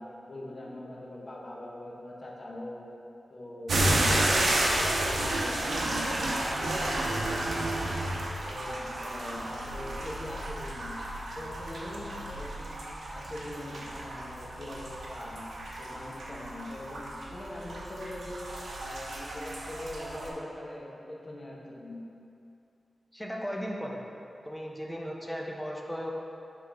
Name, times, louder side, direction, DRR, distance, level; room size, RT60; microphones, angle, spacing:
voice 1, 0.0-2.9 3.3-7.4 7.8-8.1 8.4-11.0 11.4-12.8 13.1-15.5 15.8-18.5 18.8-22.2, left 1 dB, 35° left, -3 dB, 0.9 m, -42 dB
sound 1, 3.7-20.3, right 1 dB, 80° right, 0.9 m, -31 dB
voice 2, 23.1-24.0 24.4-26.1, equal, 5° left, -1 dB, 0.6 m, -36 dB
9.9 x 3.6 x 3.4 m, 2.7 s
wide cardioid pair, 140°, 0 cm